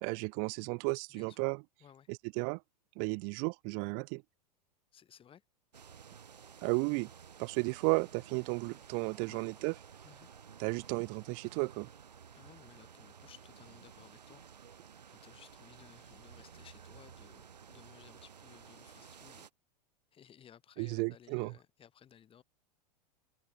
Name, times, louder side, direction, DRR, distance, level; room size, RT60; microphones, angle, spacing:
voice 1, 0.0-1.6 2.1-2.6 3.0-4.2 6.6-7.1 7.4-9.7 10.6-11.9 20.8-21.5, right 40 dB or more, 40° right, 0.8 m, -34 dB
voice 2, 1.1-1.5 1.8-2.1 4.9-5.4 7.8-7.9 9.3-9.5 10.0-10.3 12.3-14.4 15.1-19.5 20.1-22.4, left 9 dB, 25° left, 6.6 m, -59 dB
sound 1, 5.7-19.5, right 7 dB, 75° right, 6.4 m, -54 dB
figure-of-eight pair, 90°, 21 cm